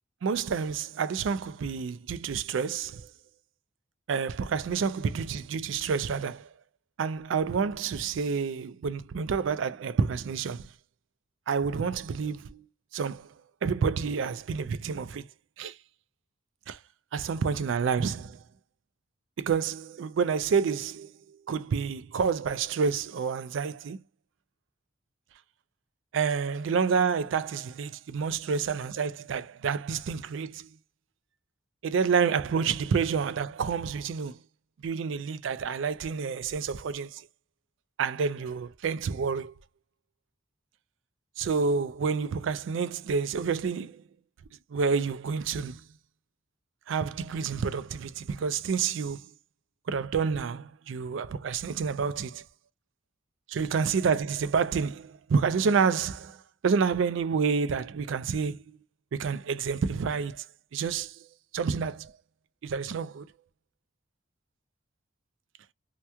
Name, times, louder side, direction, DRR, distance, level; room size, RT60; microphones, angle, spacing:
voice 1, 0.2-3.1 4.1-6.5 7.0-10.7 11.5-12.6 12.9-13.3 13.6-15.2 15.6-15.7 16.7-16.8 17.1-18.4 19.4-21.1 21.5-24.0 26.1-30.7 31.8-34.4 34.8-37.2 38.0-39.5 41.4-44.0 44.7-45.8 46.9-49.2 49.9-52.4 53.5-56.4 56.6-58.8 59.1-60.4 60.7-61.1 61.5-62.1 62.6-63.3, right 5 dB, 70° right, 0.4 m, -29 dB
2.9 x 2.2 x 3.3 m
head